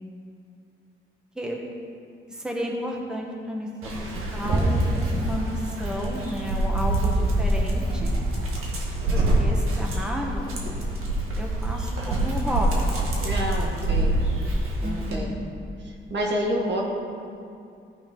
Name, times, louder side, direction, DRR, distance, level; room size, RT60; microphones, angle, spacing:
voice 1, 2.3-3.9 4.3-8.1 9.1-10.5 11.4-12.8 14.8-15.3, equal, 5° right, -1 dB, 1.4 m, -32 dB
Dog, 3.8-15.2, right 1 dB, 90° right, 1.8 m, -25 dB
voice 2, 13.1-14.1 14.8-15.3 15.8-16.8, equal, 55° right, -1 dB, 1.9 m, -28 dB
16.0 x 5.7 x 4.6 m, 2.4 s
cardioid pair, 90°, 21 cm